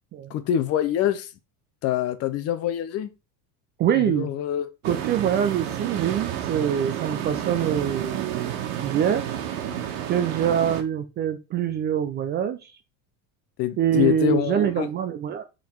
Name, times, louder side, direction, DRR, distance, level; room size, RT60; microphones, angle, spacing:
voice 1, 0.3-1.3 1.8-3.1 4.0-4.7 13.6-14.9, left 11 dB, 40° left, 0.6 m, -25 dB
voice 2, 3.8-4.3 4.8-8.5 8.8-9.2 10.1-12.7 13.8-15.4, right 9 dB, 30° right, 0.4 m, -24 dB
sound 1, 4.8-10.8, right 10 dB, 85° right, 1.4 m, -30 dB
7.3 x 3.9 x 4.4 m
cardioid pair, 165°, 40 cm